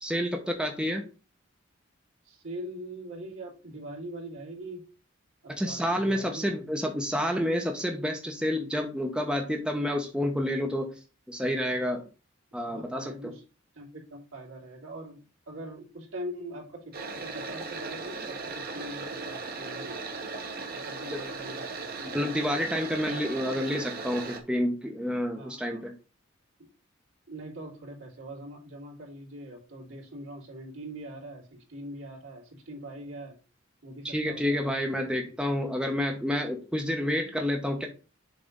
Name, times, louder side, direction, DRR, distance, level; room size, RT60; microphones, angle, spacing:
voice 1, 0.0-1.1 5.5-10.9 11.3-12.0 12.5-13.1 21.1-21.2 22.1-25.9 34.0-37.9, equal, 5° right, 3 dB, 0.9 m, -29 dB
voice 2, 2.2-4.8 5.4-6.6 12.6-13.4 13.7-20.1 20.7-21.7 22.0-22.1 25.3-25.8 26.6-26.7 27.3-33.4 33.8-34.7 35.1-35.3, right 1 dB, 75° right, -3 dB, 3.1 m, -42 dB
sound 1, 16.9-24.4, right 3 dB, 50° right, 1.2 m, -37 dB
7.1 x 3.3 x 5.2 m, 0.33 s
head